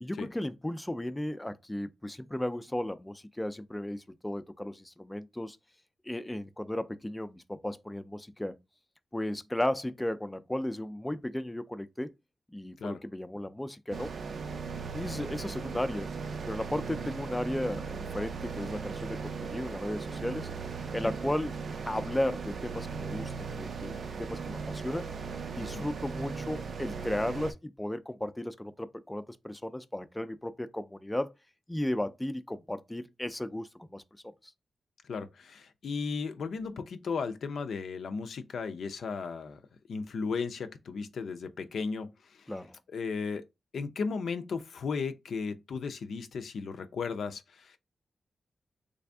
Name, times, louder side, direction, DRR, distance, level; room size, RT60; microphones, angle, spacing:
voice 1, 0.0-5.6 6.0-8.6 9.1-12.1 12.5-14.1 14.9-16.1 16.5-20.5 20.9-21.5 21.9-25.1 25.6-31.3 31.7-34.0 42.5-42.8, left 1 dB, 10° left, 0.3 m, -35 dB
sound 1, 13.9-27.5, right 5 dB, 65° right, 0.4 m, -38 dB
voice 2, 35.1-39.6 39.9-42.5 42.9-43.4 43.7-47.8, left 5 dB, 80° left, 0.4 m, -35 dB
3.3 x 2.6 x 3.4 m
cardioid pair, 80°, 0 cm